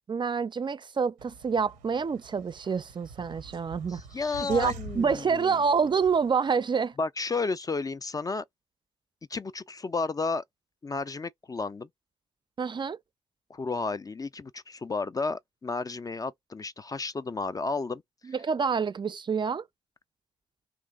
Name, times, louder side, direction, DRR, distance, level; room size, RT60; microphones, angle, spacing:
voice 1, 0.1-4.0 4.4-6.9 12.6-13.0 18.2-19.7, right 5 dB, 35° right, 0.4 m, -27 dB
sound 1, 1.2-6.3, right 3 dB, 85° right, 0.6 m, -46 dB
voice 2, 3.9-5.6 7.0-8.4 9.3-10.4 10.8-11.9 13.5-18.0, left 4 dB, 25° left, 0.4 m, -32 dB
3.0 x 2.5 x 3.6 m
hypercardioid pair, 40°, 13 cm